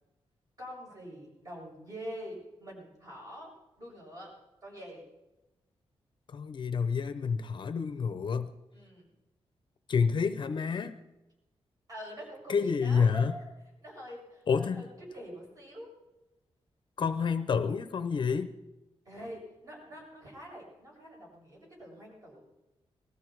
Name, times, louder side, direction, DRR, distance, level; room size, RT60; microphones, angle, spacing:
voice 1, 0.6-3.5 3.8-4.3 4.6-5.0 8.7-9.1 11.9-13.4 13.8-14.9 15.1-15.9 19.1-22.4, equal, 35° right, -3 dB, 7.5 m, -45 dB
voice 2, 6.3-8.5 9.9-11.0 12.5-13.4 14.5-14.9 17.0-18.5, left 6 dB, 50° left, 11 dB, 0.7 m, -29 dB
20.0 x 14.5 x 4.6 m, 1.0 s
wide cardioid pair, 165°, 10 cm